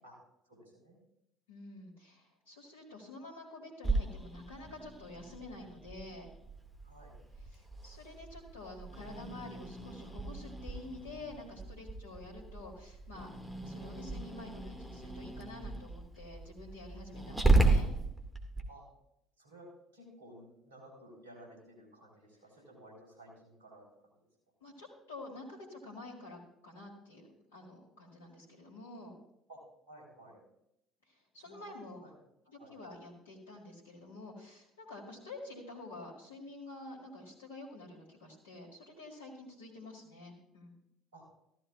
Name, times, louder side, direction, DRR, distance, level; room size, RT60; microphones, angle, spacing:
voice 1, 0.5-1.0 6.8-7.2 18.7-18.8 19.4-19.7 19.9-23.8 29.5-29.6 29.9-30.4 31.4-31.6 32.0-32.1 32.6-32.7 41.1-41.2, right 1 dB, 80° right, -2 dB, 3.8 m, -54 dB
voice 2, 1.5-6.3 7.4-13.3 13.6-17.9 24.6-29.1 31.1-32.0 32.5-40.7, left 2 dB, 80° left, -4 dB, 1.9 m, -49 dB
Growling, 3.8-18.6, right 2 dB, 5° right, 2.0 m, -35 dB
14.0 x 13.5 x 2.4 m, 0.81 s
hypercardioid pair, 60°, 0 cm